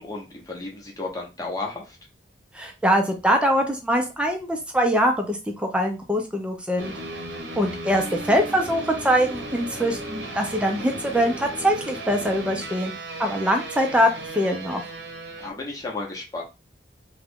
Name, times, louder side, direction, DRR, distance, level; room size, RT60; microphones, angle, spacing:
voice 1, 0.0-2.0 8.3-8.4 15.4-16.4, left 3 dB, 20° left, -1 dB, 0.9 m, -33 dB
voice 2, 2.5-6.9 7.6-12.9 13.2-14.8, equal, 5° right, 3 dB, 0.6 m, -23 dB
sound 1, 6.8-15.5, right 2 dB, 80° right, 0.8 m, -35 dB
3.1 x 2.4 x 3.6 m, 0.27 s
head